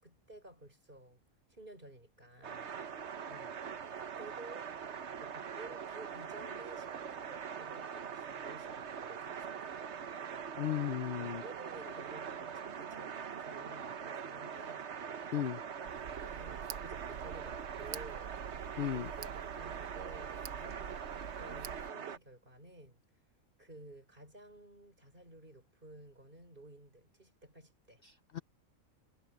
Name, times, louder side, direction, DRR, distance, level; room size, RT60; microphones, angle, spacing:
voice 1, 0.0-1.2 1.5-2.7 3.3-3.5 4.0-4.8 5.2-9.7 11.2-14.9 16.2-18.3 18.9-23.0 23.6-28.0, right 2 dB, 35° right, 5.9 m, -53 dB
sound 1, 2.4-22.2, right 7 dB, 55° right, 1.2 m, -43 dB
voice 2, 10.6-11.4 15.3-15.6 18.8-19.1 28.0-28.4, left 10 dB, 55° left, 0.7 m, -35 dB
Tick, 15.9-21.9, right 8 dB, 75° right, 1.2 m, -47 dB
omnidirectional pair, 1.4 m